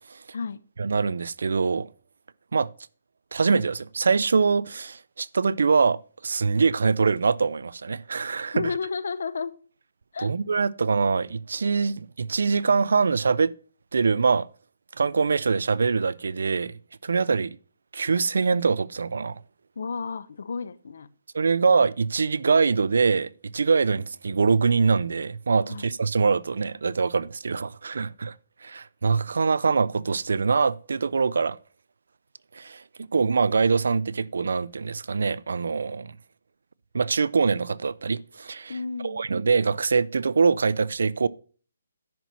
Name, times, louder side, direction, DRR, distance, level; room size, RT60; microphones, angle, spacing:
voice 1, 0.8-1.9 2.5-2.7 3.3-8.7 10.2-13.5 13.9-14.5 15.0-17.6 17.9-19.4 21.3-28.3 28.6-31.6 32.5-36.2 36.9-38.7 39.0-41.3, right 5 dB, 75° right, 0.4 m, -24 dB
voice 2, 8.5-9.5 10.1-10.3 19.8-21.1 25.7-25.9 38.7-39.3, left 5 dB, 65° left, 0.7 m, -32 dB
10.5 x 4.1 x 6.0 m
hypercardioid pair, 165°, 0 cm